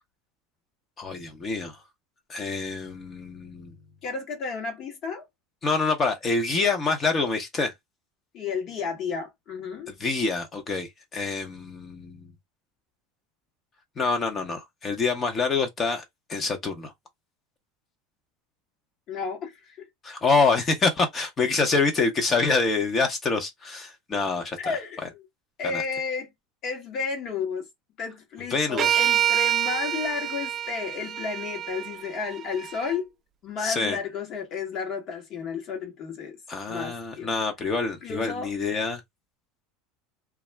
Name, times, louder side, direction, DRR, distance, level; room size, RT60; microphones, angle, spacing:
voice 1, 1.0-1.8 2.3-3.7 5.6-7.7 9.9-12.3 14.0-16.0 16.3-16.9 20.0-24.7 25.7-25.8 28.5-29.1 33.6-34.0 36.5-39.0, left 4 dB, 30° left, 0.7 m, -26 dB
voice 2, 4.0-5.2 8.3-9.9 19.1-19.9 24.6-25.3 25.6-26.3 26.6-27.7 28.0-33.1 33.4-36.4 36.7-37.3 38.0-38.5, left 5 dB, 50° left, 1.0 m, -32 dB
sound 1, 28.8-32.9, right 11 dB, 40° right, 0.5 m, -27 dB
2.3 x 2.0 x 3.2 m
supercardioid pair, 100°, 0 cm